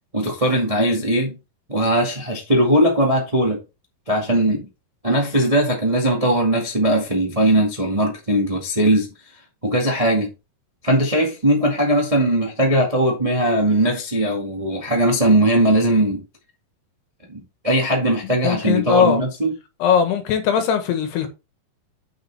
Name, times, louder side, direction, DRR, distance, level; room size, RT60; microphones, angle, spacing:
voice 1, 0.1-1.4 1.7-3.6 4.1-4.7 5.0-9.1 9.6-10.3 10.8-16.2 17.3-19.5, right 1 dB, 55° right, 0.4 m, -19 dB
voice 2, 18.2-19.2 19.8-21.3, left 7 dB, 90° left, 3.5 m, -20 dB
7.9 x 6.7 x 3.5 m
omnidirectional pair, 4.5 m